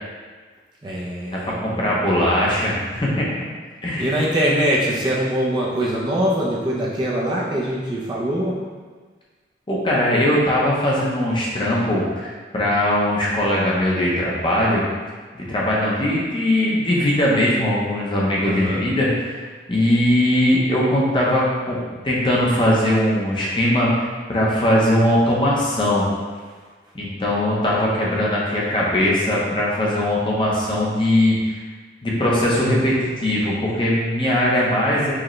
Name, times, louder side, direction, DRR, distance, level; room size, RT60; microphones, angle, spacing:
voice 1, 0.8-2.1 4.0-8.6 18.4-18.8, equal, 25° right, -5 dB, 0.4 m, -23 dB
voice 2, 1.3-3.4 3.8-4.2 9.7-14.8 15.4-19.3 19.7-21.8 22.0-23.9 24.3-26.1 26.9-31.6 32.0-35.1, left 1 dB, 25° left, -5 dB, 0.6 m, -20 dB
4.8 x 2.2 x 3.0 m, 1.4 s
head